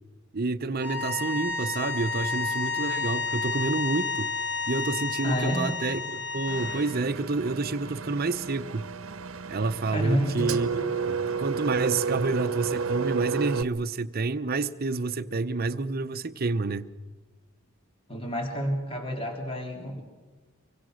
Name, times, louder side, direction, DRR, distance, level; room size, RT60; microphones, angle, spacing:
voice 1, 0.3-4.4 4.7-8.8 9.5-16.9, right 3 dB, 45° right, 0.8 m, -29 dB
sound 1, 0.8-6.9, left 4 dB, 55° left, 4.1 m, -31 dB
voice 2, 5.2-5.7 9.9-10.5 18.1-20.0, equal, 25° left, 3.3 m, -29 dB
Engine, 6.5-13.6, right 5 dB, 70° right, 1.0 m, -32 dB
25.0 x 24.5 x 6.4 m
head